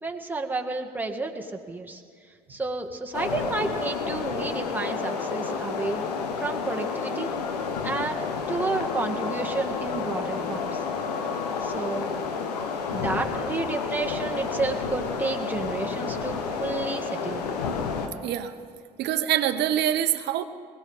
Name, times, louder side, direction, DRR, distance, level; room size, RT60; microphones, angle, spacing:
voice 1, 0.0-2.0 2.5-6.0 6.4-7.3 7.8-8.2 8.5-10.8 11.6-12.2 12.9-17.4, right 3 dB, 10° right, 1 dB, 1.9 m, -31 dB
sound 1, 3.1-18.1, left 5 dB, 90° left, 1.2 m, -30 dB
voice 2, 18.2-18.5 19.0-20.4, right 11 dB, 60° right, 9 dB, 1.0 m, -25 dB
21.5 x 18.0 x 3.6 m, 2.1 s
hypercardioid pair, 65°, 20 cm